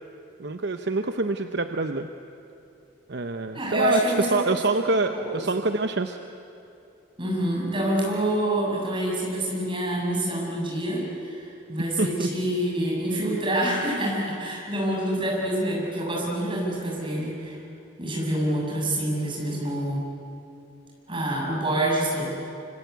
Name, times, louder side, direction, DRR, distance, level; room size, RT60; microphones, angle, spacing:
voice 1, 0.4-2.1 3.1-6.2 12.0-12.3, right 3 dB, 55° right, 7 dB, 0.8 m, -26 dB
voice 2, 3.5-4.6 5.1-5.4 7.2-17.6 18.0-20.1 21.1-22.2, right 1 dB, 25° right, -3 dB, 7.2 m, -27 dB
26.0 x 26.0 x 8.2 m, 2.8 s
head